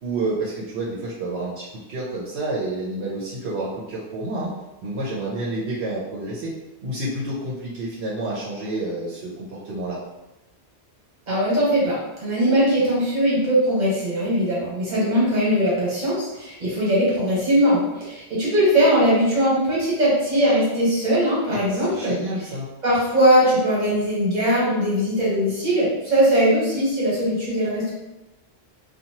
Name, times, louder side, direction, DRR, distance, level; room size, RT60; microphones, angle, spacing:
voice 1, 0.0-4.5 4.8-6.5 6.8-10.0 21.5-22.7, right 2 dB, 80° right, -6 dB, 0.9 m, -29 dB
voice 2, 11.3-22.2 22.8-27.9, equal, 45° right, -7 dB, 1.2 m, -20 dB
2.7 x 2.3 x 2.8 m, 0.99 s
omnidirectional pair, 1.1 m